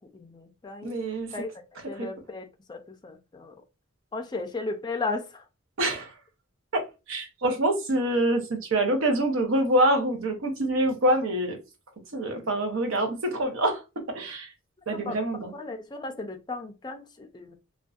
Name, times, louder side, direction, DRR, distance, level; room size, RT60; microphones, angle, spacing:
voice 1, 0.1-1.0 1.3-1.5 1.9-3.5 4.1-5.4 12.2-12.5 14.9-15.2 15.6-17.6, left 3 dB, 20° left, 0.4 m, -35 dB
voice 2, 0.8-1.3 2.0-2.1 5.8-6.1 6.7-11.6 12.1-14.5 14.9-15.5, right 1 dB, 75° right, 0.7 m, -26 dB
2.5 x 2.1 x 2.3 m
head